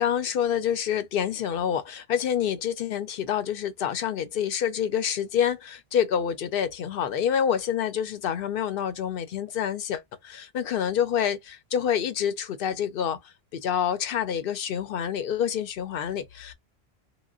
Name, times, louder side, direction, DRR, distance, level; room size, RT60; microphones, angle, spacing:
voice 1, 0.0-16.5, left 9 dB, 65° left, 0.7 m, -27 dB
3.1 x 2.1 x 2.3 m
omnidirectional pair, 1.1 m